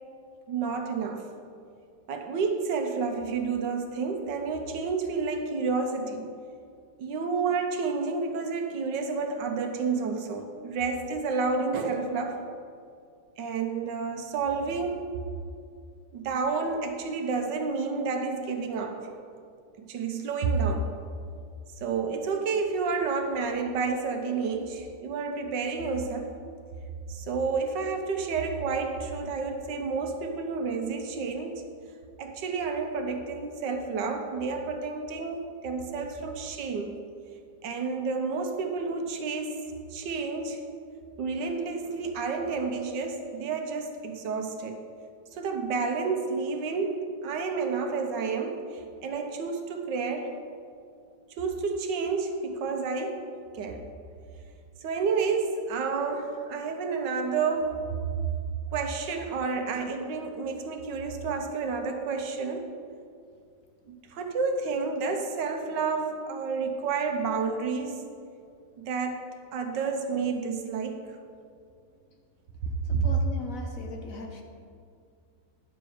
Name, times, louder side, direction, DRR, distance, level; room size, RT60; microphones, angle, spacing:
voice 1, 0.5-1.3 2.1-6.3 7.0-12.4 13.4-15.1 16.1-19.1 19.8-20.9 21.8-26.4 27.1-31.6 32.2-37.0 37.6-39.6 39.9-40.7 41.2-44.8 45.3-50.4 51.4-53.3 53.5-53.9 54.8-57.9 58.7-62.7 63.9-68.0 68.8-71.2 72.9-73.1, right 4 dB, 75° right, 5 dB, 1.5 m, -30 dB
voice 2, 72.9-74.4, left 4 dB, 55° left, 2 dB, 1.1 m, -39 dB
10.5 x 7.0 x 4.9 m, 2.3 s
omnidirectional pair, 2.0 m